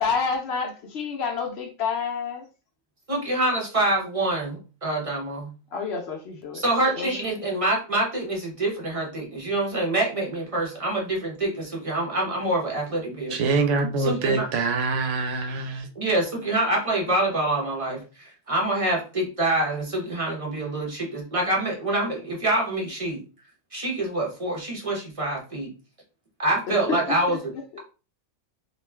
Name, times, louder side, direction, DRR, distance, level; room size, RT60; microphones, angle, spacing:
voice 1, 0.0-2.4 5.7-6.6 6.9-7.2 26.7-27.0 27.3-27.8, left 5 dB, 65° left, 0.8 m, -29 dB
voice 2, 3.1-5.5 6.5-13.4 14.0-14.5 16.0-23.2 23.7-25.7 26.4-27.4, right 2 dB, 35° right, 0.6 m, -26 dB
voice 3, 13.3-15.9, right 3 dB, 75° right, 0.9 m, -24 dB
2.4 x 2.3 x 3.2 m
omnidirectional pair, 1.3 m